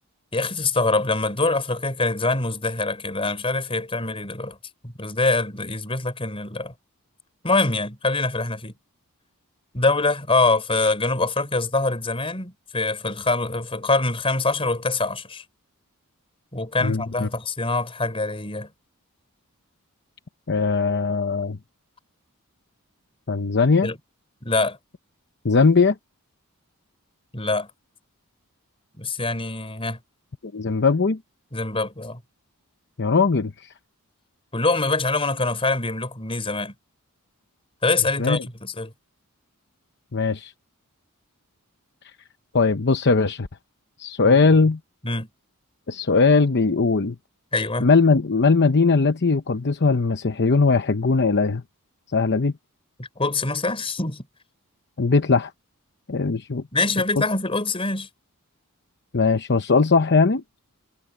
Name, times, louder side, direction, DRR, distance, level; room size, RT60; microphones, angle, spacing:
voice 1, 0.3-4.6 4.8-6.7 7.4-8.7 9.7-15.4 16.5-18.7 23.8-24.0 24.4-24.8 27.3-27.7 29.0-30.0 31.5-32.2 34.5-36.7 37.8-38.9 44.2-44.4 45.0-45.3 47.5-47.9 53.0-54.2 56.7-58.1, left 3 dB, 25° left, 4.7 m, -24 dB
voice 2, 16.8-17.3 20.5-21.6 23.3-23.9 25.4-25.9 30.5-31.2 33.0-33.7 38.2-38.4 40.1-40.5 42.5-43.5 44.0-44.8 45.9-47.1 47.8-51.6 52.1-52.5 55.0-55.5 56.1-56.6 57.2-57.3 59.1-60.4, left 4 dB, 50° left, 0.8 m, -19 dB
head